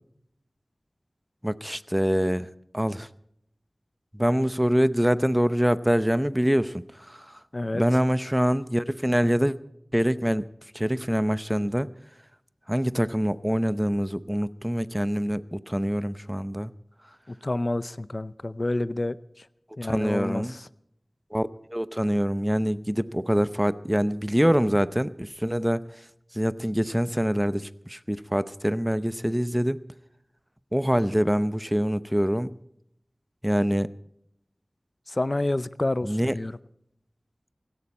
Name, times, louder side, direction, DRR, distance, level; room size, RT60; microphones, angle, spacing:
voice 1, 1.4-2.5 2.7-3.1 4.1-7.4 7.7-9.6 9.9-10.5 10.7-11.9 12.7-16.7 19.9-20.5 21.3-25.8 26.3-29.8 30.7-32.5 33.4-33.9 36.0-36.3, equal, 5° right, 15 dB, 0.7 m, -25 dB
voice 2, 7.5-7.8 17.3-19.5 19.8-20.7 35.1-36.6, left 2 dB, 45° left, 17 dB, 0.6 m, -29 dB
17.0 x 17.0 x 4.3 m, 0.74 s
wide cardioid pair, 45°, 0 cm